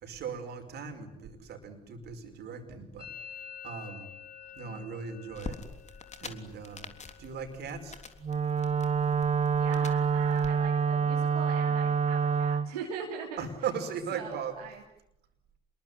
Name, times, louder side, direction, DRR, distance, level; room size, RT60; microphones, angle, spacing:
voice 1, 0.0-3.1 3.6-4.1 4.5-5.6 6.2-6.9 7.2-8.0 13.4-14.6, right 6 dB, 65° right, 6 dB, 5.3 m, -38 dB
Musical instrument, 3.0-10.6 10.9-11.5 11.7-12.3 12.6-14.6, left 7 dB, 55° left, 4.0 m, -52 dB
voice 2, 4.6-5.0 9.6-13.4 14.1-14.8, right 6 dB, 85° right, -1 dB, 3.1 m, -41 dB
sound 1, 5.3-10.5, left 4 dB, 40° left, 3.6 m, -46 dB
Wind instrument woodwind instrument, 8.2-12.7, right 6 dB, 40° right, 1.3 m, -27 dB
27.5 x 22.0 x 9.7 m, 0.81 s
hypercardioid pair, 50°, 19 cm